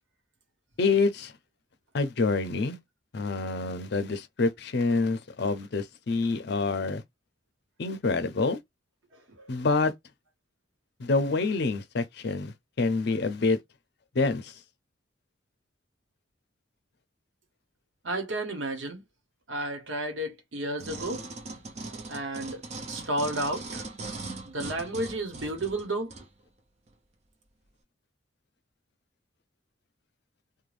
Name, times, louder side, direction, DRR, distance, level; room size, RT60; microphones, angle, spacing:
voice 1, 0.8-1.3 1.9-2.8 3.1-7.0 7.8-8.6 9.5-9.9 11.0-13.6 14.1-14.5, left 3 dB, 60° left, 0.5 m, -27 dB
voice 2, 18.0-19.0 19.5-21.2 22.1-22.6 22.9-23.8 24.4-26.1, right 1 dB, 85° right, 1.0 m, -32 dB
sound 1, 20.8-26.3 26.9-27.0, right 3 dB, 35° right, 0.5 m, -40 dB
2.5 x 2.2 x 3.2 m
head